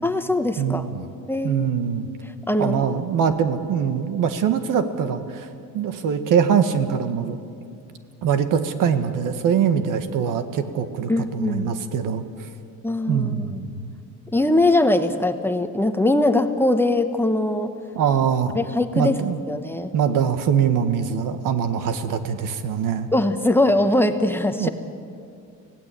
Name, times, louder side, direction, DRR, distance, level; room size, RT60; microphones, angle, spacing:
voice 1, 0.0-0.8 1.3-1.7 2.2-2.8 11.1-11.7 12.8-13.6 14.3-17.7 18.5-19.2 19.5-19.9 23.1-24.7, left 1 dB, 5° left, 7 dB, 1.0 m, -21 dB
voice 2, 0.6-1.0 1.4-2.1 2.6-5.5 5.7-7.4 8.2-12.5 13.1-13.9 17.9-18.5 18.9-19.4 19.9-23.1 24.6-24.7, right 7 dB, 70° right, 9 dB, 1.7 m, -23 dB
25.0 x 17.0 x 8.6 m, 2.3 s
cardioid pair, 135°, 33 cm